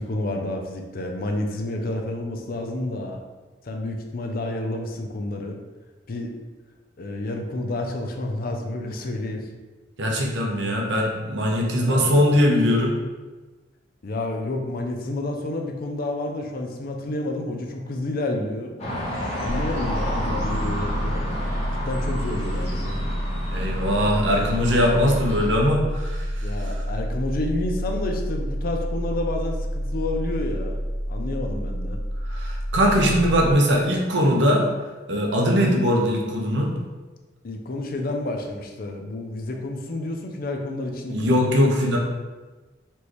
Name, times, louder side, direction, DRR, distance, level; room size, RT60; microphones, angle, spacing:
voice 1, 0.0-3.2 3.6-5.6 6.1-6.3 7.0-9.5 11.5-12.3 14.0-18.8 19.4-21.3 21.6-23.0 26.4-30.8 31.1-32.0 37.4-41.4, left 2 dB, 50° left, 3 dB, 0.5 m, -30 dB
voice 2, 10.0-13.0 23.5-26.5 32.3-34.6 35.1-36.7 41.1-42.0, equal, 65° right, 0 dB, 0.8 m, -21 dB
sound 1, 18.8-25.5, equal, 35° left, 1.0 m, -31 dB
sound 2, 19.4-33.5, equal, 5° right, 0.6 m, -29 dB
4.3 x 3.3 x 3.0 m, 1.3 s
head